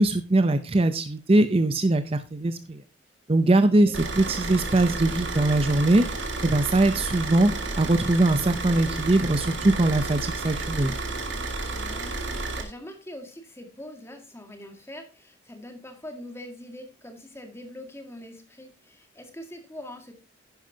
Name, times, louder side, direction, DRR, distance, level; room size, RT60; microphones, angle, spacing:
voice 1, 0.0-2.8 3.3-7.5 7.8-10.9, right 2 dB, 30° right, 10 dB, 0.6 m, -21 dB
Car / Idling, 3.9-12.6, right 3 dB, 85° right, 2.3 m, -31 dB
voice 2, 11.7-20.1, left 1 dB, 15° left, 5 dB, 1.9 m, -43 dB
10.5 x 10.5 x 2.8 m, 0.30 s
head